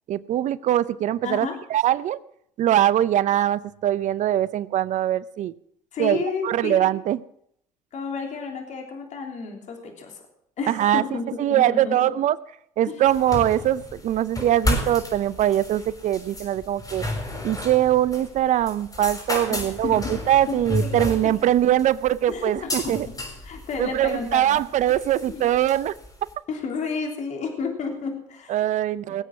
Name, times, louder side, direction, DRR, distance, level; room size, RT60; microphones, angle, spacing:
voice 1, 0.1-2.2 2.6-5.5 6.0-6.2 6.4-7.2 10.7-11.0 11.4-12.4 12.8-17.1 17.4-23.1 23.8-25.9 28.5-29.2, right 12 dB, 55° right, 18 dB, 0.6 m, -22 dB
voice 2, 1.2-1.6 5.9-6.9 7.9-10.2 10.6-12.1 12.9-13.1 19.5-20.1 20.5-21.5 22.3-23.0 23.4-24.6 25.3-25.5 26.5-28.6 29.1-29.2, left 5 dB, 55° left, 2 dB, 3.2 m, -32 dB
sound 1, 13.1-26.3, left 1 dB, 25° left, 6.1 m, -32 dB
20.5 x 8.2 x 6.0 m, 0.71 s
hypercardioid pair, 65°, 15 cm